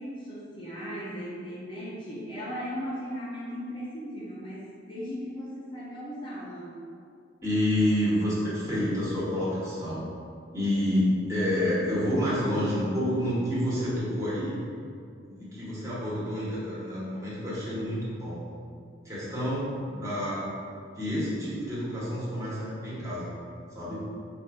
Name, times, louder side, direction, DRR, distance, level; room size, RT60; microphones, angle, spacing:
voice 1, 0.0-6.7, equal, 25° left, -8 dB, 0.7 m, -37 dB
voice 2, 7.4-10.1 10.5-14.6 15.3-18.4 19.0-20.4 21.0-23.3 23.7-24.0, left 1 dB, 15° right, -9 dB, 1.3 m, -28 dB
4.2 x 2.5 x 4.5 m, 2.3 s
head